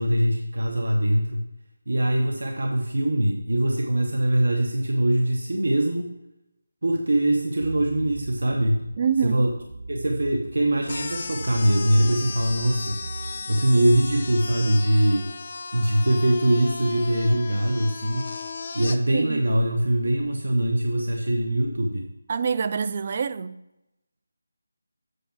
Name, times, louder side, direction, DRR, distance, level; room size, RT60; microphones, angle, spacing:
voice 1, 0.0-1.4 1.9-6.1 6.8-8.9 9.2-9.5 9.9-13.0 13.5-15.3 15.7-18.3 18.7-22.1, right 1 dB, 85° right, 1.0 m, -22 dB
sound 1, 7.6-14.7, right 3 dB, 65° right, 1.1 m, -39 dB
voice 2, 9.0-9.5 19.1-19.4 22.3-23.6, right 6 dB, 35° right, 0.3 m, -26 dB
sound 2, 10.9-19.0, left 4 dB, 40° left, 0.5 m, -36 dB
8.1 x 5.8 x 5.8 m
figure-of-eight pair, 170°, 0 cm